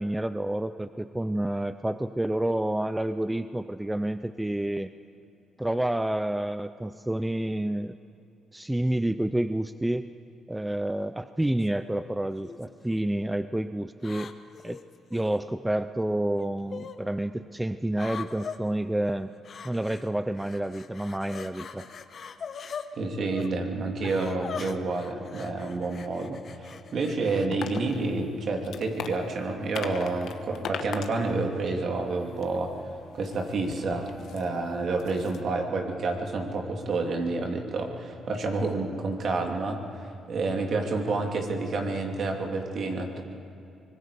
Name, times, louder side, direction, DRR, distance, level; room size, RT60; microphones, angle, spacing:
voice 1, 0.0-4.9 5.6-8.0 8.5-10.1 10.5-14.3 14.6-14.8 15.1-19.3 19.6-21.9, right 1 dB, 10° right, 12 dB, 0.5 m, -29 dB
sound 1, 11.4-11.7 12.4-13.0 14.0-15.4 16.4-17.0 17.9-18.6 19.4-20.1 20.3-22.9 23.3-23.5 24.0-27.5, left 6 dB, 50° left, 1.0 m, -41 dB
voice 2, 23.0-32.8 33.1-43.2, right 3 dB, 55° right, 2 dB, 2.7 m, -29 dB
sound 2, 27.5-35.4, left 7 dB, 75° left, 1.2 m, -41 dB
25.0 x 20.5 x 5.0 m, 2.7 s
cardioid pair, 90°, 0 cm